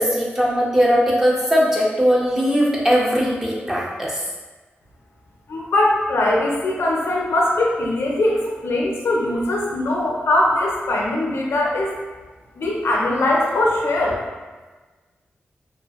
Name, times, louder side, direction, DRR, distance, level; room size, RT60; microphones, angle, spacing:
voice 1, 0.0-4.1, equal, 10° right, -4 dB, 0.5 m, -19 dB
voice 2, 5.5-11.9 12.6-14.2, left 1 dB, 90° left, -2 dB, 0.5 m, -21 dB
2.6 x 2.4 x 2.3 m, 1.3 s
wide cardioid pair, 110°, 4 cm